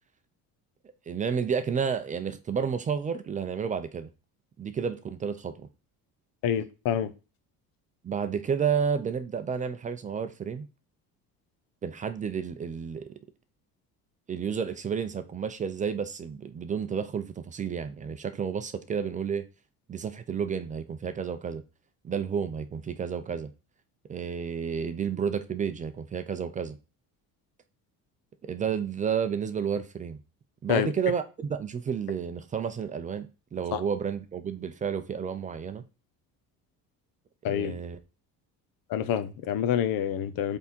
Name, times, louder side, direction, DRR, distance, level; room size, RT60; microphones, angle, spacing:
voice 1, 1.1-4.1 4.6-5.7 8.0-10.7 11.8-13.1 14.3-19.4 19.9-21.6 22.0-23.5 24.1-26.8 28.4-30.2 30.6-35.8 37.5-38.0, right 7 dB, 20° right, 0.5 m, -31 dB
voice 2, 6.4-7.1 30.7-30.9 33.7-33.8 37.4-37.8 38.9-40.6, left 9 dB, 75° left, 1.0 m, -27 dB
8.2 x 3.7 x 4.3 m
cardioid pair, 175°, 35 cm